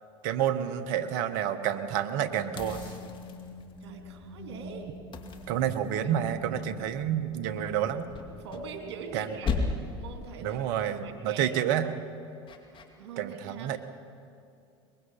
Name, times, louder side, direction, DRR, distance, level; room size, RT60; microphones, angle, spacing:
voice 1, 0.2-2.8 5.5-8.1 9.1-9.3 10.4-12.0 13.2-13.8, right 10 dB, 65° right, 10 dB, 1.3 m, -29 dB
sound 1, 2.2-9.5, left 2 dB, 70° left, 4.1 m, -46 dB
sound 2, 2.6-3.8 5.1-6.3 8.1-9.1 9.4-10.1 12.5-12.8, left 4 dB, 35° left, 2.4 m, -35 dB
voice 2, 3.8-4.9 6.0-6.3 8.4-9.6 10.0-10.7 10.9-11.5 13.0-13.8, right 5 dB, 85° right, 4 dB, 2.9 m, -42 dB
23.0 x 21.5 x 5.8 m, 2.5 s
hypercardioid pair, 85°, 14 cm